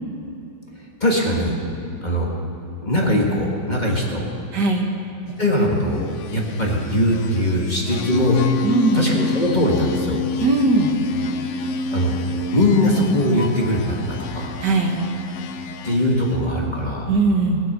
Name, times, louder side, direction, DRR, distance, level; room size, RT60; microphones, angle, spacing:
voice 1, 1.0-1.6 2.0-2.3 2.8-4.2 5.4-8.4 8.9-10.2 11.9-12.2 12.5-14.5 15.8-17.1, left 1 dB, 25° left, -2 dB, 1.7 m, -21 dB
voice 2, 4.5-4.9 8.6-9.0 10.4-10.9 14.6-15.0 17.1-17.6, right 3 dB, 70° right, 2 dB, 2.0 m, -19 dB
sound 1, 5.7-16.6, left 4 dB, 65° left, 0.7 m, -29 dB
20.0 x 7.8 x 6.6 m, 2.8 s
omnidirectional pair, 1.9 m